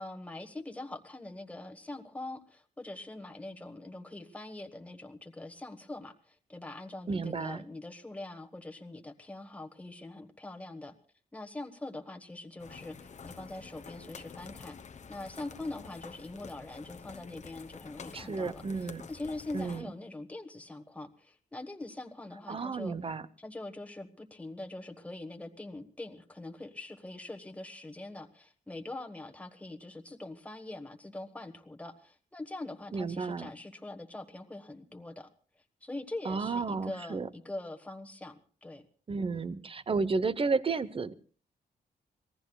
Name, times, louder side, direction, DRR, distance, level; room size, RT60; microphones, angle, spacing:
voice 1, 0.0-10.9 11.3-14.8 15.1-23.0 23.4-35.3 35.8-38.9, left 2 dB, 10° left, 3 dB, 1.3 m, -43 dB
voice 2, 7.1-7.6 18.1-19.0 19.5-19.9 22.5-23.2 32.9-33.5 36.2-37.3 39.1-41.1, right 4 dB, 35° right, 15 dB, 0.8 m, -32 dB
sound 1, 12.6-19.8, left 6 dB, 45° left, 0.9 m, -48 dB
26.0 x 18.5 x 2.3 m, 0.41 s
wide cardioid pair, 110°, 16 cm